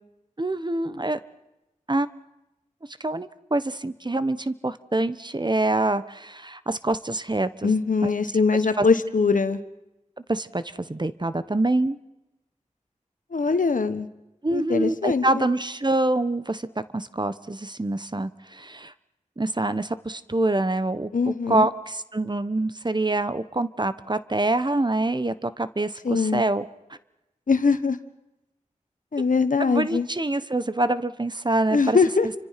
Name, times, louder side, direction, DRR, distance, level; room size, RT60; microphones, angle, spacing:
voice 1, 0.4-1.2 1.9-2.1 3.0-7.7 8.0-8.1 8.8-8.9 10.3-12.0 14.4-16.7 16.9-18.9 19.4-26.7 29.6-32.0, right 2 dB, 35° right, 13 dB, 1.2 m, -25 dB
voice 2, 7.6-9.6 13.3-14.1 14.5-15.5 21.1-21.7 26.0-26.4 27.5-28.0 29.1-30.1 31.7-32.3, left 4 dB, 85° left, 11 dB, 1.4 m, -22 dB
30.0 x 25.0 x 6.0 m, 0.94 s
wide cardioid pair, 45°, 13 cm